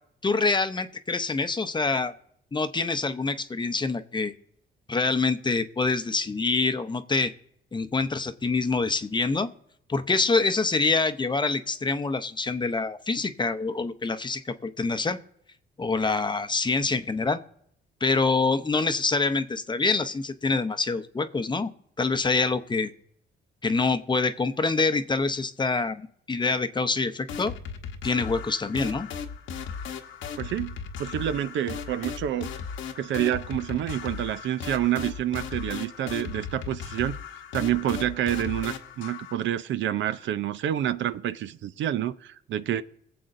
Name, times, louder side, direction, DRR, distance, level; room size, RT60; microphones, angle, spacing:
voice 1, 0.2-2.1 2.5-4.3 4.9-7.3 7.7-9.5 9.9-15.2 15.8-17.4 18.0-21.7 22.0-22.9 23.6-27.5 28.0-29.1, left 3 dB, 25° left, 0.7 m, -26 dB
sound 1, 27.3-39.3, left 6 dB, 85° left, 1.0 m, -37 dB
voice 2, 30.4-32.5 33.0-37.1 37.5-42.8, right 11 dB, 70° right, 0.6 m, -28 dB
22.0 x 7.7 x 2.6 m
cardioid pair, 90°, 20 cm